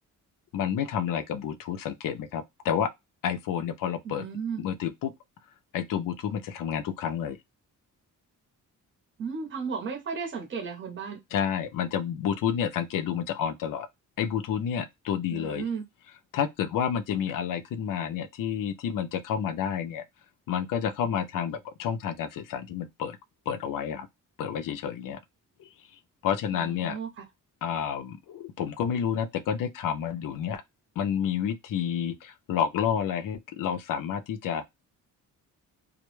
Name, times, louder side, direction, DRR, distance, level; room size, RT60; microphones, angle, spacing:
voice 1, 0.5-2.9 3.2-4.3 4.6-5.1 5.7-7.4 11.3-13.9 14.2-15.7 16.3-20.0 20.5-23.2 23.5-24.1 24.4-25.2 25.6-25.7 26.2-27.0 27.6-30.6 31.0-34.6, left 8 dB, 75° left, 0.5 m, -30 dB
voice 2, 4.0-4.6 9.2-11.2 15.3-15.8 26.5-27.1, right 5 dB, 35° right, 0.7 m, -34 dB
2.1 x 2.0 x 3.0 m
wide cardioid pair, 160°, 33 cm